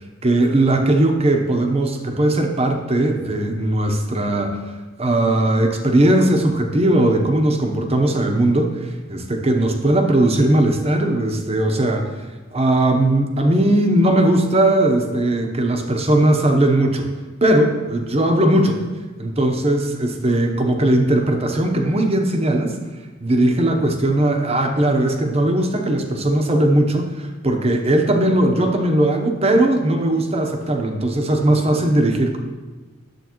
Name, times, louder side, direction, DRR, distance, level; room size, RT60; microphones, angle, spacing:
voice 1, 0.2-12.1 12.5-17.1 17.4-18.8 19.2-22.8 23.2-32.4, right 1 dB, 30° right, 4 dB, 0.8 m, -18 dB
10.5 x 7.7 x 3.0 m, 1.3 s
head